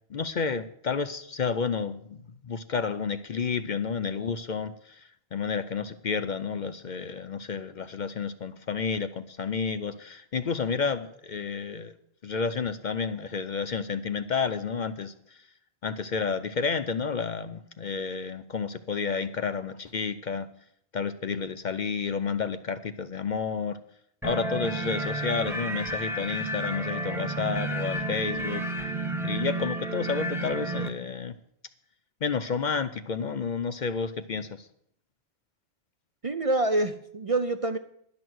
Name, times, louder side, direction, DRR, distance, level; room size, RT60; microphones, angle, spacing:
voice 1, 0.1-11.9 12.2-15.4 15.8-20.5 20.9-23.8 24.2-28.9 29.2-31.4 32.2-34.7, left 5 dB, 50° left, 10 dB, 0.6 m, -31 dB
sound 1, 24.2-30.9, right 1 dB, ahead, 0.9 m, -31 dB
voice 2, 36.2-37.8, right 2 dB, 40° right, 9 dB, 0.5 m, -26 dB
11.5 x 6.3 x 9.3 m, 0.68 s
omnidirectional pair, 1.1 m